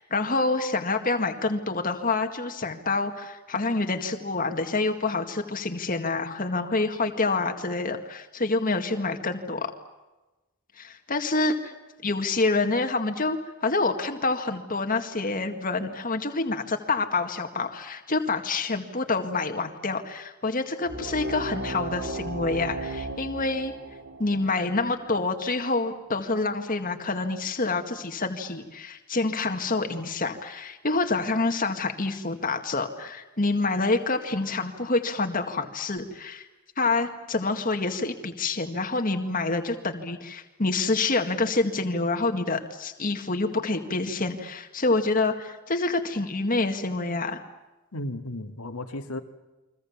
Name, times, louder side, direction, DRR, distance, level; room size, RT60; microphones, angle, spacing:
voice 1, 0.0-9.7 10.8-11.7 12.0-23.7 24.2-36.5 36.8-47.4, left 3 dB, 40° left, 2.0 m, -27 dB
sound 1, 20.9-26.0, right 2 dB, 50° right, 2.3 m, -36 dB
voice 2, 47.9-49.2, left 1 dB, 80° left, 2.1 m, -34 dB
30.0 x 23.5 x 7.3 m
head